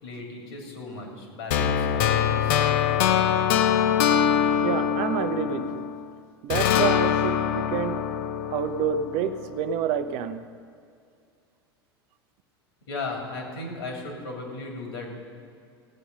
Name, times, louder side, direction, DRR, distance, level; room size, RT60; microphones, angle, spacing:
voice 1, 0.0-3.2 12.9-15.2, left 2 dB, 70° left, 0 dB, 3.1 m, -36 dB
sound 1, 1.5-6.0 6.5-9.6, left 9 dB, 55° left, 0.7 m, -23 dB
voice 2, 4.6-5.9 6.4-8.1 8.5-10.4, right 8 dB, 50° right, 9 dB, 0.7 m, -28 dB
16.0 x 8.5 x 5.4 m, 2.3 s
figure-of-eight pair, 85°, 13 cm